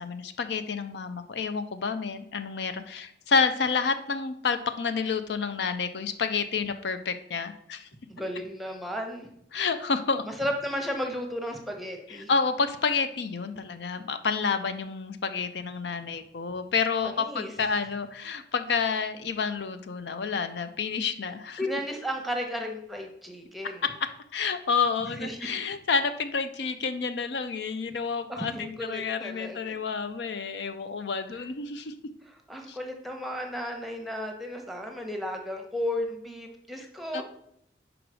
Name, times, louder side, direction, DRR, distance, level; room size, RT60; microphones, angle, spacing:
voice 1, 0.0-7.9 9.5-10.3 12.1-21.6 23.8-31.9 32.7-32.8 37.1-37.2, left 5 dB, 70° left, 9 dB, 0.5 m, -29 dB
voice 2, 8.1-9.3 10.3-12.3 17.0-17.5 21.6-23.8 25.0-25.5 28.3-29.7 32.3-37.2, equal, ahead, 3 dB, 0.9 m, -34 dB
5.0 x 4.7 x 6.1 m, 0.72 s
head